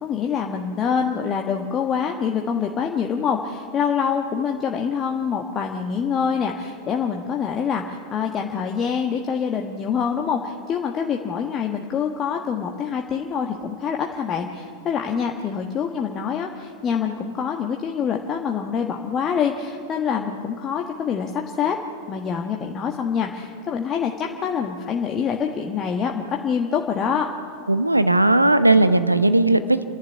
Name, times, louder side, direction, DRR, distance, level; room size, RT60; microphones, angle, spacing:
voice 1, 0.0-21.8 22.1-27.3, left 7 dB, 25° left, 2 dB, 1.4 m, -25 dB
voice 2, 27.7-29.8, right 2 dB, 85° right, 12 dB, 0.9 m, -17 dB
29.0 x 11.5 x 9.6 m, 2.4 s
figure-of-eight pair, 90°, 0 cm